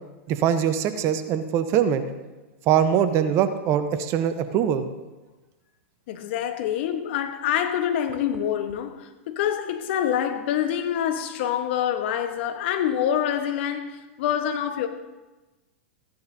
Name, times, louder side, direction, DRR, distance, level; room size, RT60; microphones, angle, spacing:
voice 1, 0.3-2.0 2.7-4.8, right 9 dB, 40° right, 0.9 m, -22 dB
voice 2, 6.1-14.9, left 9 dB, 55° left, 1.1 m, -26 dB
15.0 x 11.0 x 2.7 m
hypercardioid pair, 105°, 7 cm